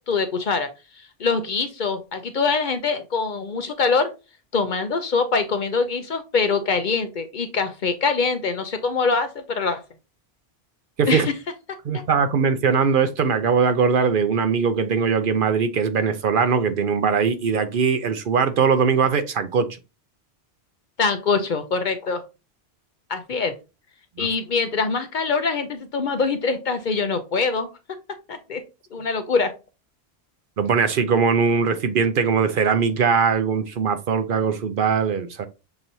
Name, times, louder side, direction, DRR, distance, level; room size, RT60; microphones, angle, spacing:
voice 1, 0.1-0.7 1.2-4.1 4.5-9.8 11.1-11.3 21.0-22.2 23.1-23.5 24.2-27.7 28.3-28.6 28.9-29.5, left 4 dB, 55° left, 0.7 m, -23 dB
voice 2, 11.8-19.7 24.2-24.3 30.6-35.5, right 6 dB, 60° right, 0.7 m, -21 dB
6.8 x 2.9 x 2.7 m
omnidirectional pair, 1.1 m